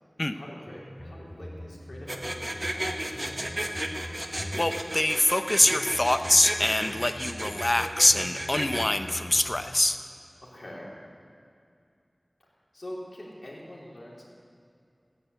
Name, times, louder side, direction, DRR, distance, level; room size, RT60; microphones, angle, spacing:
voice 1, 0.3-3.8 10.4-10.9 12.7-14.2, left 1 dB, 70° left, -4 dB, 3.5 m, -44 dB
sound 1, 0.7-4.9 5.6-9.8, equal, 25° left, 4.4 m, -43 dB
sound 2, 2.1-8.8, right 1 dB, 35° right, 1.2 m, -33 dB
voice 2, 4.3-10.0, left 1 dB, 40° left, 9 dB, 0.8 m, -24 dB
14.5 x 9.8 x 8.1 m, 2.5 s
wide cardioid pair, 45°, 0 cm